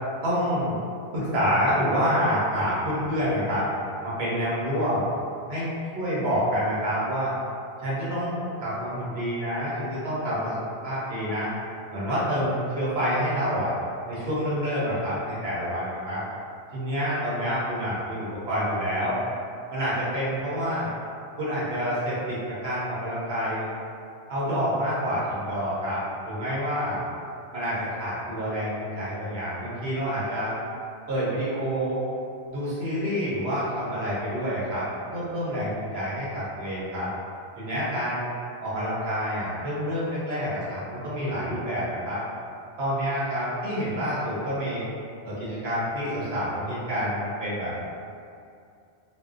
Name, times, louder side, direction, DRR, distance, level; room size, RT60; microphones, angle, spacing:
voice 1, 0.2-0.8 1.1-3.7 4.0-5.0 5.5-7.3 7.8-10.6 10.8-11.5 11.9-13.7 14.1-16.3 16.7-19.2 19.7-20.9 21.4-23.7 24.3-27.0 27.5-30.6 31.1-32.0 32.5-37.1 37.6-38.3 38.6-42.2 42.8-44.8 45.2-47.7, equal, 65° right, -9 dB, 0.9 m, -28 dB
2.6 x 2.1 x 2.4 m, 2.4 s
omnidirectional pair, 1.2 m